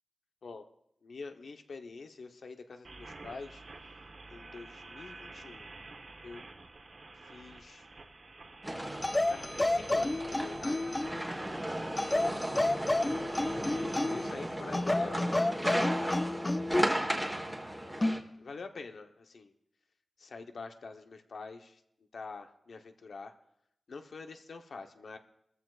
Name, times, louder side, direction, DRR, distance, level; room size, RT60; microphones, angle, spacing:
voice 1, 1.0-3.6 4.3-5.7 6.2-6.4 7.2-7.9 9.3-11.0 14.1-16.3 17.8-19.5 20.2-21.8 22.1-23.3 23.9-25.2, left 4 dB, 80° left, 6 dB, 0.9 m, -46 dB
sound 1, 2.8-14.5, right 3 dB, 55° right, 1.1 m, -50 dB
sound 2, 8.6-18.2, right 1 dB, 10° right, 1.3 m, -36 dB
sound 3, 9.0-11.3 12.0-14.3 14.7-16.9 18.0-18.3, left 2 dB, 20° left, 0.4 m, -30 dB
23.0 x 14.0 x 2.4 m, 0.75 s
wide cardioid pair, 120°, 0 cm